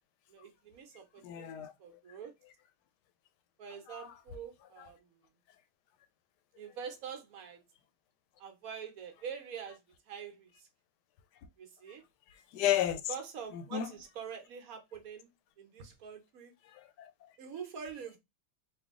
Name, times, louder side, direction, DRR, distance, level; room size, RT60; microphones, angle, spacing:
voice 1, 0.3-2.3 3.6-5.2 6.6-7.6 8.4-10.7 11.6-12.0 13.1-16.5 17.4-18.2, right 7 dB, 60° right, 1.2 m, -45 dB
voice 2, 1.2-2.0 3.9-4.1 4.8-4.9 12.5-13.0 13.5-13.9 16.7-17.3, left 11 dB, 80° left, 1.2 m, -33 dB
3.3 x 2.6 x 3.6 m
omnidirectional pair, 1.8 m